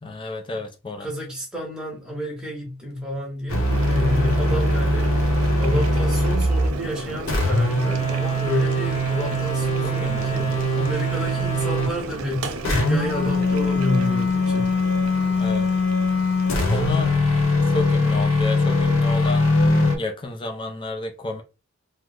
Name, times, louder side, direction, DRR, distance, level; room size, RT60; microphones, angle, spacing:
voice 1, 0.0-1.1 9.8-10.6 15.4-15.7 16.7-17.2 17.6-19.5 20.0-21.4, left 2 dB, 25° left, 0.5 m, -31 dB
voice 2, 1.0-14.8, left 1 dB, 5° right, 0.9 m, -30 dB
sound 1, 3.5-6.8 7.3-12.0 12.6-20.0, left 1 dB, 75° left, 0.9 m, -21 dB
Boiling, 3.5-17.0, right 2 dB, 80° right, 0.6 m, -34 dB
3.0 x 2.0 x 3.7 m
head